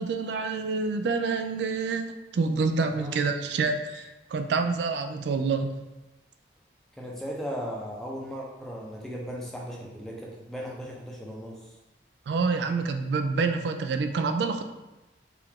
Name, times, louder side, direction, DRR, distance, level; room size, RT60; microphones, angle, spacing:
voice 1, 0.0-5.7 12.3-14.6, right 4 dB, 70° right, 7 dB, 0.3 m, -27 dB
voice 2, 2.9-3.3 7.0-11.7, equal, ahead, -3 dB, 0.6 m, -37 dB
4.6 x 2.5 x 3.6 m, 1.0 s
head